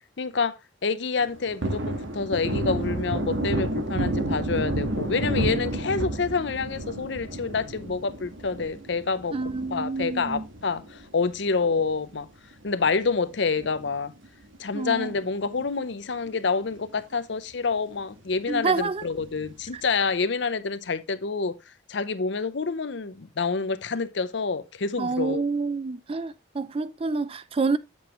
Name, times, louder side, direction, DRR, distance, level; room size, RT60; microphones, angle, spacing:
voice 1, 0.2-0.6 0.8-9.3 9.7-12.3 12.6-14.1 14.6-21.6 21.9-25.4, left 4 dB, 65° left, 0.7 m, -27 dB
Thunder, 1.2-11.9 12.3-12.4 12.8-14.3 14.5-14.7 15.0-15.9 16.3-16.4 16.7-16.8 19.2-19.7, right 1 dB, 85° right, 1.5 m, -31 dB
voice 2, 9.3-10.5 14.7-15.1 18.5-19.0 19.7-19.8 25.0-27.8, right 4 dB, 30° right, 0.4 m, -28 dB
8.1 x 6.9 x 3.0 m
head